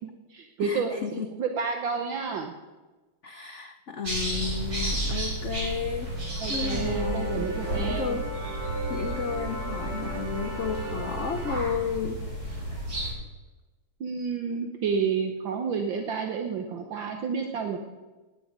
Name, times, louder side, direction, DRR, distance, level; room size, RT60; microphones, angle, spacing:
voice 1, 0.0-1.0 1.4-2.5 6.4-8.2 14.0-17.8, right 5 dB, 65° right, 4 dB, 1.7 m, -30 dB
voice 2, 0.6-1.3 3.2-8.3 8.9-12.2, left 6 dB, 90° left, 7 dB, 0.6 m, -33 dB
sound 1, 4.0-13.1, right 1 dB, 45° right, 5.9 m, -32 dB
sound 2, 6.0-11.6, right 2 dB, 30° right, 3.3 m, -37 dB
18.0 x 9.8 x 5.0 m, 1.2 s
omnidirectional pair, 2.3 m